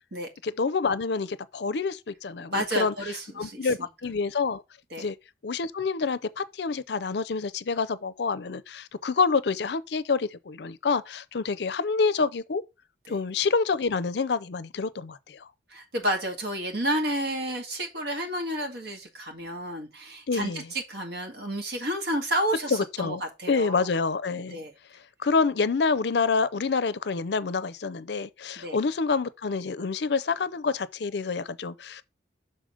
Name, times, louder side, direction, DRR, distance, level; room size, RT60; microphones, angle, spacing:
voice 1, 0.4-2.9 3.4-4.6 5.0-5.2 5.4-12.6 13.1-15.5 20.3-20.7 22.7-23.2 23.5-24.6 25.2-32.0, left 4 dB, 65° left, 0.5 m, -27 dB
voice 2, 2.5-3.9 4.9-5.0 13.1-13.2 15.7-23.9 24.5-24.7 28.6-28.8, right 1 dB, 65° right, 2.0 m, -31 dB
6.4 x 4.1 x 5.0 m
head